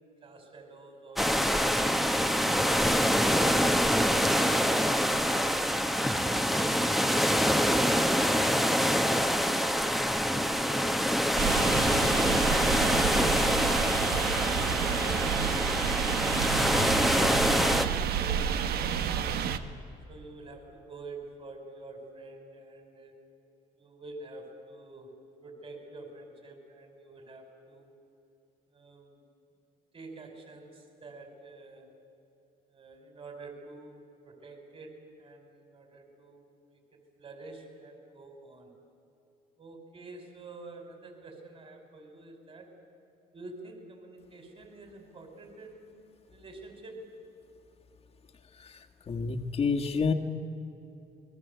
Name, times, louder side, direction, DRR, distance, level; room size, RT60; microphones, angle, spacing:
voice 1, 0.2-1.6 5.1-5.9 6.5-10.9 14.0-15.8 16.5-19.4 20.1-23.1 23.8-25.1 25.4-27.9 28.7-29.2 29.9-31.9 32.7-36.4 36.7-36.8 37.2-38.7 39.6-42.7 43.3-45.9 46.3-47.0, right 2 dB, 35° right, 4 dB, 5.1 m, -47 dB
sound 1, 1.2-17.8, equal, ahead, 1.1 m, -25 dB
sound 2, 11.4-19.6, right 8 dB, 65° right, 1.3 m, -30 dB
voice 2, 48.5-50.1, left 5 dB, 35° left, 1 dB, 1.7 m, -29 dB
28.5 x 20.5 x 8.1 m, 2.8 s
cardioid pair, 110°, 17 cm